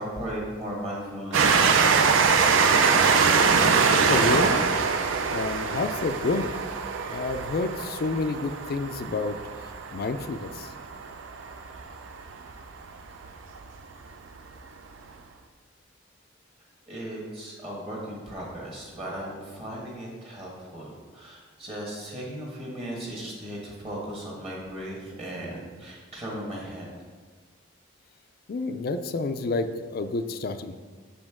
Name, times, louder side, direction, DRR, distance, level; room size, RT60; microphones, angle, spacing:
voice 1, 0.0-2.4 16.9-26.9, right 1 dB, 30° right, -4 dB, 1.2 m, -37 dB
Train, 1.3-12.5 13.2-13.3 13.5-13.6, right 5 dB, 70° right, 0.5 m, -23 dB
voice 2, 4.1-4.6 5.3-6.5 7.0-9.4 9.9-10.7 28.5-30.8, left 3 dB, 45° left, 10 dB, 0.3 m, -29 dB
6.5 x 5.1 x 3.6 m, 1.4 s
head